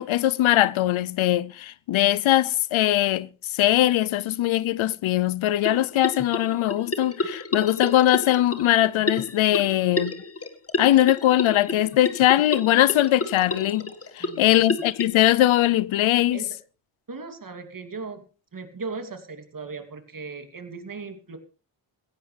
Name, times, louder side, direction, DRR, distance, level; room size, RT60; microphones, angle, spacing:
voice 1, 0.0-10.1 10.8-16.4, left 14 dB, 90° left, 0.7 m, -21 dB
sound 1, 5.6-15.0, left 2 dB, 30° left, 1.7 m, -31 dB
voice 2, 14.2-14.7 16.3-16.6 17.1-18.3 18.5-21.4, right 4 dB, 45° right, 2.8 m, -37 dB
17.5 x 15.0 x 3.4 m
cardioid pair, 70°, 46 cm